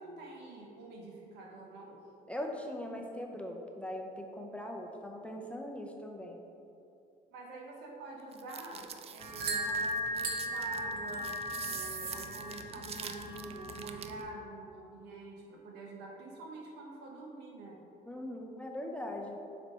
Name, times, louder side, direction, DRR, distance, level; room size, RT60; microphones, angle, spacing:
voice 1, 0.0-2.0 7.3-11.3 11.6-17.8, right 2 dB, 85° right, -1 dB, 1.2 m, -46 dB
voice 2, 2.3-6.4 18.1-19.4, left 1 dB, 5° left, 1 dB, 0.6 m, -40 dB
sound 1, 8.3-14.2, right 8 dB, 35° right, 0.4 m, -44 dB
sound 2, 9.2-14.2, right 1 dB, 65° right, 1.0 m, -37 dB
7.1 x 3.4 x 5.2 m, 2.7 s
cardioid pair, 110°, 17 cm